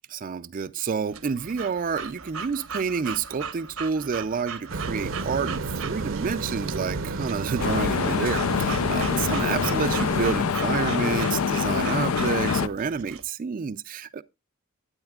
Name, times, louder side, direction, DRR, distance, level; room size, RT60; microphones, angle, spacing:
voice 1, 0.1-14.2, right 5 dB, 40° right, 0.4 m, -29 dB
Breathing / Dog, 1.1-13.2, right 6 dB, 85° right, 1.1 m, -38 dB
sound 1, 4.7-10.4, right 3 dB, 65° right, 0.7 m, -31 dB
sound 2, 7.6-12.7, left 6 dB, 90° left, 0.5 m, -25 dB
12.0 x 8.8 x 2.3 m
head